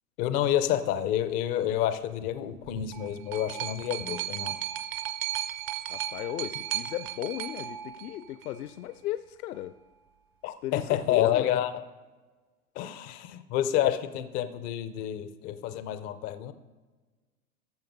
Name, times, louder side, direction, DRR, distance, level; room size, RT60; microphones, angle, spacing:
voice 1, 0.2-4.6 10.4-11.7 12.8-16.5, left 11 dB, 20° left, 12 dB, 0.4 m, -29 dB
sound 1, 2.6-8.6 9.5-9.6, right 12 dB, 40° right, 0.6 m, -35 dB
voice 2, 5.9-9.7 10.6-11.5, left 13 dB, 70° left, 13 dB, 0.6 m, -35 dB
14.0 x 6.7 x 5.3 m, 1.3 s
hypercardioid pair, 110°, 47 cm